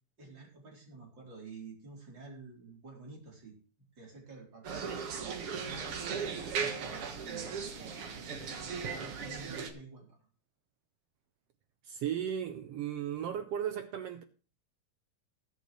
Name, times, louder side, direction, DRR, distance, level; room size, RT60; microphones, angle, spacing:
voice 1, 0.2-3.6 4.0-5.8 6.3-8.6 9.0-10.2, right 4 dB, 35° right, 4.4 m, -50 dB
sound 1, 4.6-9.7, right 6 dB, 55° right, 2.1 m, -37 dB
voice 2, 11.8-14.2, right 9 dB, 75° right, 1.5 m, -35 dB
20.5 x 7.9 x 3.2 m
omnidirectional pair, 3.5 m